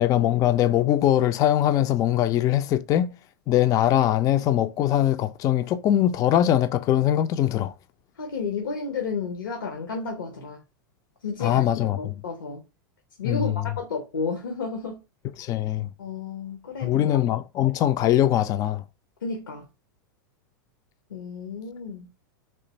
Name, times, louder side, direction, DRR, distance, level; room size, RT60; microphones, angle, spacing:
voice 1, 0.0-3.1 3.5-7.7 11.4-12.2 13.2-13.8 15.4-15.9 16.8-18.8, left 12 dB, 35° left, 0.3 m, -22 dB
voice 2, 8.2-10.6 11.2-12.6 13.2-15.0 16.0-17.2 19.2-19.6 21.1-22.1, left 4 dB, 85° left, 0.8 m, -32 dB
3.3 x 3.3 x 4.1 m
hypercardioid pair, 100°, 11 cm